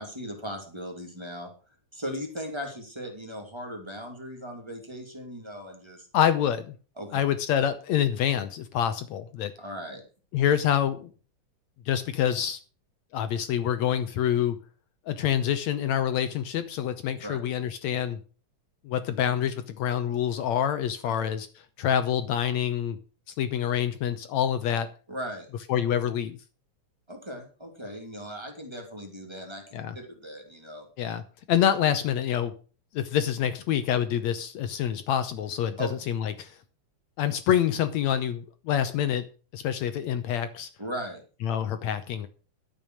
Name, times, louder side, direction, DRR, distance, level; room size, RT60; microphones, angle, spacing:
voice 1, 0.0-1.5 1.9-6.1 7.0-7.2 9.6-10.0 17.2-17.4 21.0-21.1 25.1-25.5 27.1-30.9 35.8-35.9 40.8-41.2, equal, 10° right, 2 dB, 2.5 m, -38 dB
voice 2, 6.1-6.7 7.1-9.5 10.3-11.1 11.9-12.6 13.1-14.6 15.1-18.2 18.9-21.5 21.8-23.0 23.4-24.9 25.7-26.4 29.7-30.0 31.0-31.2 31.5-32.5 32.9-36.6 37.2-39.3 39.5-40.7 41.4-42.3, left 9 dB, 70° left, 11 dB, 1.9 m, -26 dB
12.0 x 7.1 x 6.4 m, 0.38 s
omnidirectional pair, 3.6 m